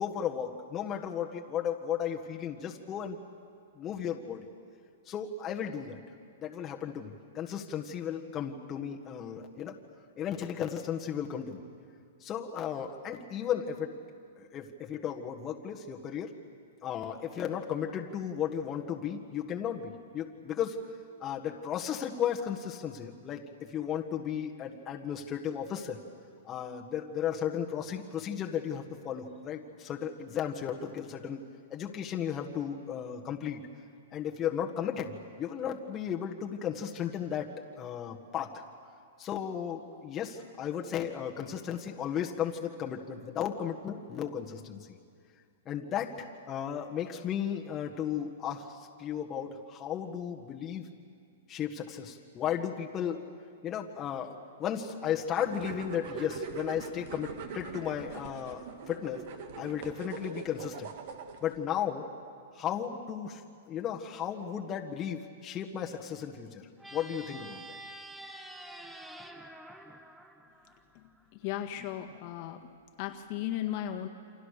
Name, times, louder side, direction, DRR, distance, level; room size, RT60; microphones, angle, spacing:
voice 1, 0.0-3.2 3.8-4.5 5.1-6.0 6.4-9.8 10.2-11.6 12.2-14.0 14.4-16.3 16.8-20.8 21.2-26.0 26.4-31.4 31.7-33.7 34.1-38.6 39.2-44.9 45.6-50.8 51.5-53.2 53.6-59.2 59.6-60.9 61.4-62.1 62.5-63.4 63.7-66.6 66.9-67.8, left 9 dB, 20° left, 0 dB, 1.6 m, -35 dB
sound 1, 55.3-61.6, right 6 dB, 55° right, 2.4 m, -42 dB
sound 2, 66.8-71.2, right 1 dB, 5° right, 1.2 m, -47 dB
voice 2, 71.3-72.7 73.0-74.1, left 12 dB, 45° left, 5 dB, 1.7 m, -36 dB
28.5 x 26.0 x 6.8 m, 2.2 s
hypercardioid pair, 150°, 0 cm